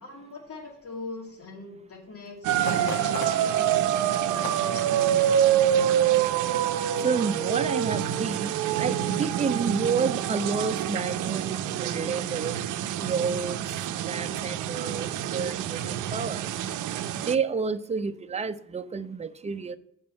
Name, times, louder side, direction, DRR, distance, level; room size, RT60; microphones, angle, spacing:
voice 1, 0.0-5.5, left 3 dB, 50° left, 0 dB, 2.3 m, -42 dB
sound 1, 2.4-17.4, right 10 dB, 85° right, 0.6 m, -26 dB
sound 2, 2.6-5.7 6.0-6.2 6.7-7.0 7.5-7.6, left 4 dB, 90° left, 1.4 m, -40 dB
voice 2, 7.0-12.6 13.0-13.6 14.0-16.5 17.3-19.8, right 5 dB, 20° right, 9 dB, 0.6 m, -30 dB
7.3 x 5.3 x 5.6 m, 0.72 s
cardioid pair, 90°, 30 cm